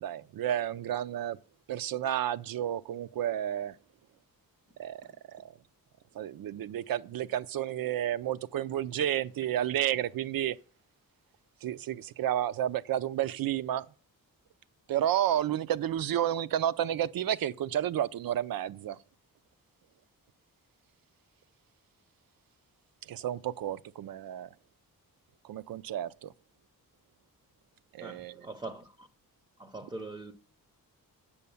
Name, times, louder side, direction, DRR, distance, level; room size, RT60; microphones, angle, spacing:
voice 1, 0.0-1.4 1.7-3.8 4.8-5.0 6.2-10.6 11.6-13.8 14.9-19.0 23.1-24.5 25.4-26.3 27.9-28.5, right 11 dB, 75° right, 0.5 m, -31 dB
voice 2, 28.0-29.1 29.6-30.3, right 2 dB, 10° right, 0.5 m, -42 dB
8.5 x 7.0 x 7.0 m
wide cardioid pair, 175°, 35 cm